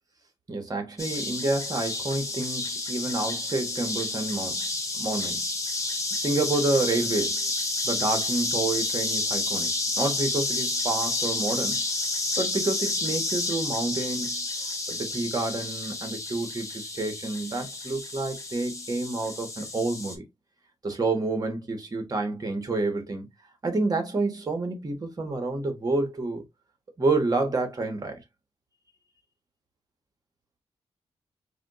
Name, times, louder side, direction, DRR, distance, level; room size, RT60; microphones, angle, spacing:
voice 1, 0.5-4.7 5.0-5.4 6.2-7.4 7.8-11.8 12.4-14.4 14.9-20.2 20.8-23.3 23.6-26.4 27.0-28.2, right 2 dB, 35° right, 1.3 m, -29 dB
sound 1, 1.0-20.1, left 2 dB, 30° left, 0.9 m, -30 dB
4.8 x 2.7 x 2.4 m
wide cardioid pair, 115°, 11 cm